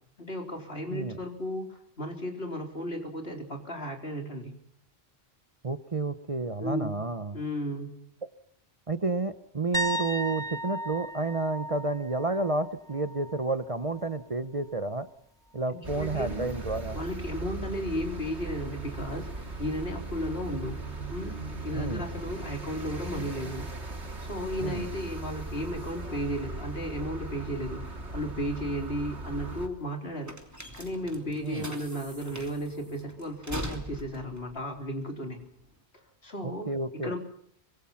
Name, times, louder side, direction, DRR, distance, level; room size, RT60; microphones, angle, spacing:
voice 1, 0.2-4.5 6.6-6.9 7.3-8.0 15.7-16.5 16.9-20.8 21.1-21.4 21.6-23.7 24.2-30.4 30.7-35.4 36.2-37.2, equal, 65° left, 3 dB, 4.4 m, -34 dB
voice 2, 5.6-7.4 8.9-15.1 15.5-17.0 21.7-22.1 24.6-24.9 31.4-31.7 36.4-37.1, right 3 dB, 35° right, 11 dB, 1.0 m, -31 dB
sound 1, 9.7-13.5 13.8-14.2 17.0-17.1, equal, 5° left, 0.9 m, -35 dB
sound 2, 15.8-29.7, right 2 dB, 85° right, 3.6 m, -38 dB
sound 3, 29.3-35.8, right 1 dB, 15° right, 3.1 m, -42 dB
25.0 x 23.0 x 5.8 m, 0.70 s
omnidirectional pair, 1.1 m